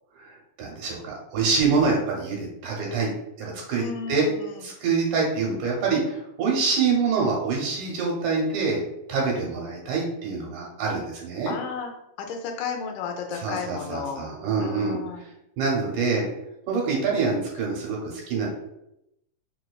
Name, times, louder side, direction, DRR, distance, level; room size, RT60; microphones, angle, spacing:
voice 1, 0.6-3.1 3.4-4.3 4.6-8.8 9.1-11.6 13.3-15.0 15.6-16.3 16.7-18.5, right 4 dB, 85° right, -2 dB, 2.2 m, -25 dB
voice 2, 3.7-4.6 11.5-11.9 12.2-14.3 14.6-15.2, left 6 dB, 85° left, 3 dB, 2.0 m, -33 dB
5.0 x 2.3 x 2.2 m, 0.83 s
omnidirectional pair, 3.5 m